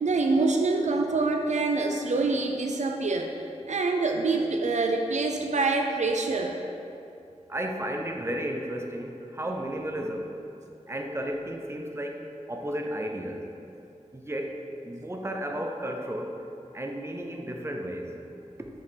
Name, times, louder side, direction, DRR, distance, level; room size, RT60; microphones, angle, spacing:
voice 1, 0.0-3.3 3.7-6.6, right 3 dB, 70° right, 3 dB, 0.4 m, -25 dB
voice 2, 7.5-10.3 10.9-13.5 14.1-16.4 16.7-18.2 18.6-18.7, right 1 dB, 20° right, 2 dB, 0.6 m, -33 dB
6.0 x 4.5 x 3.9 m, 2.7 s
wide cardioid pair, 60°, 13 cm